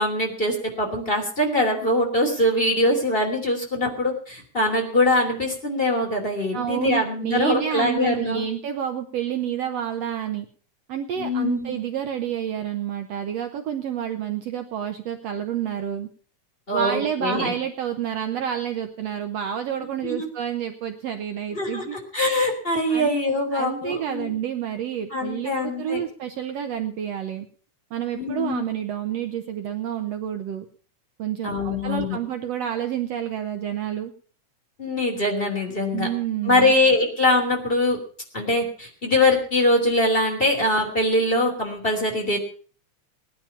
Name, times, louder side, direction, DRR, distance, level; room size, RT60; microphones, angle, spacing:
voice 1, 0.0-8.5 11.2-11.8 16.7-17.5 20.0-20.3 21.5-24.3 25.1-26.0 28.1-28.7 31.4-32.2 34.8-36.1 36.4-38.0 38.3-42.4, left 1 dB, 20° left, 0 dB, 3.1 m, -23 dB
voice 2, 6.5-10.5 10.9-16.1 16.7-22.0 22.9-23.2 23.5-27.5 27.9-30.7 31.2-34.1 35.9-36.7, right 9 dB, 65° right, 6 dB, 1.8 m, -29 dB
18.5 x 10.5 x 5.6 m, 0.43 s
omnidirectional pair, 3.5 m